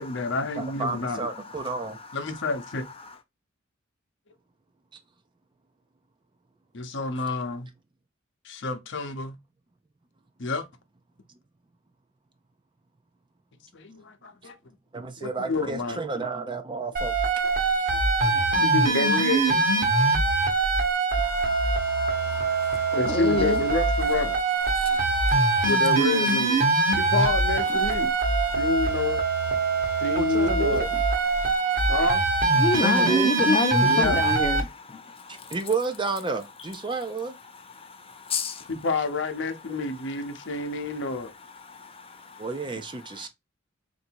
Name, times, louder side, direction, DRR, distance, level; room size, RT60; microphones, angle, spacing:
voice 1, 0.0-1.3 2.1-2.8 6.7-7.7 8.4-9.4 10.4-10.6 13.7-14.6 15.2-16.3 17.9-19.7 22.9-24.4 24.9-25.0 25.7-26.6 27.0-28.1 28.5-29.2 30.0-30.9 31.9-32.2 33.8-34.3 38.7-41.3, left 3 dB, 60° left, 0.8 m, -29 dB
voice 2, 0.6-2.0 14.9-17.2 30.2-30.9 32.7-33.3 33.8-34.0 35.3-37.3 42.4-43.3, right 3 dB, 25° right, 0.5 m, -31 dB
voice 3, 1.3-2.5 3.0-3.1 21.2-23.6 24.7-25.7 26.7-27.1 27.7-28.0 28.4-29.0 29.6-30.0 30.9-31.0 31.3-32.0 32.5-35.6 37.4-38.7 40.3-42.5 43.0-43.3, left 3 dB, 30° left, 0.6 m, -32 dB
sound 1, 17.0-34.6, right 3 dB, 40° right, 1.1 m, -23 dB
3.9 x 2.6 x 4.4 m
head